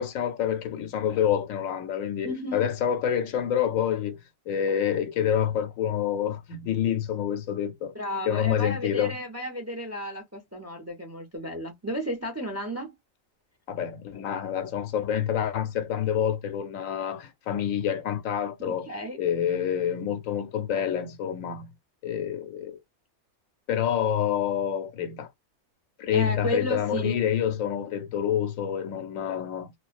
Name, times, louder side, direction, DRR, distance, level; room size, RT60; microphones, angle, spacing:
voice 1, 0.0-7.9 8.3-9.1 13.7-18.9 19.2-21.7 22.0-22.8 23.7-25.3 26.0-29.7, left 9 dB, 80° left, 1.0 m, -27 dB
voice 2, 2.2-2.7 7.9-12.9 18.9-19.2 26.1-27.2, left 1 dB, 20° right, 0.4 m, -33 dB
2.3 x 2.2 x 2.4 m
omnidirectional pair, 1.4 m